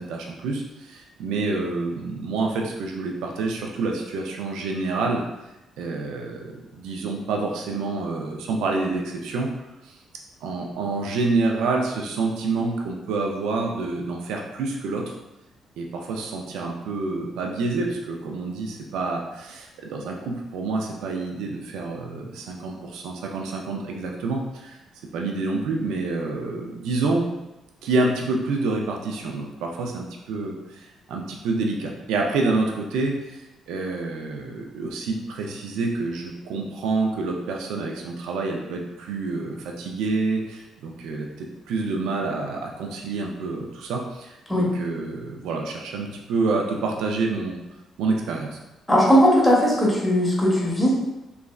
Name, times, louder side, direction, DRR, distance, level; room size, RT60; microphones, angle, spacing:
voice 1, 0.0-5.2 5.8-9.5 9.8-10.0 10.4-15.1 15.8-24.8 25.1-27.3 27.8-47.6 48.0-48.6, right 3 dB, 90° right, 1 dB, 0.3 m, -28 dB
voice 2, 48.9-51.0, equal, 10° left, -5 dB, 0.8 m, -18 dB
3.0 x 2.4 x 2.2 m, 0.97 s
cardioid pair, 90°, 0 cm